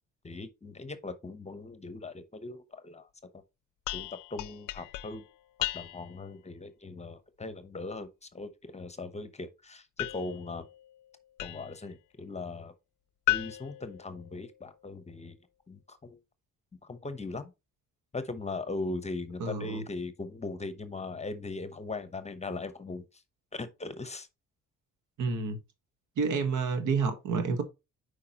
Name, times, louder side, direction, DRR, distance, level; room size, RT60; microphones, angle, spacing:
voice 1, 0.2-3.4 3.9-5.3 5.6-10.7 11.4-12.7 13.3-15.4 15.7-16.2 16.8-17.5 18.1-23.2 23.5-24.3, left 3 dB, 20° left, 0.9 m, -39 dB
sound 1, 3.9-6.2 10.0-11.9 13.3-14.7, left 17 dB, 80° left, 0.5 m, -36 dB
voice 2, 19.4-19.8 25.2-25.6 26.2-27.6, right 4 dB, 75° right, 1.4 m, -29 dB
8.4 x 5.1 x 2.9 m
cardioid pair, 90°, 30 cm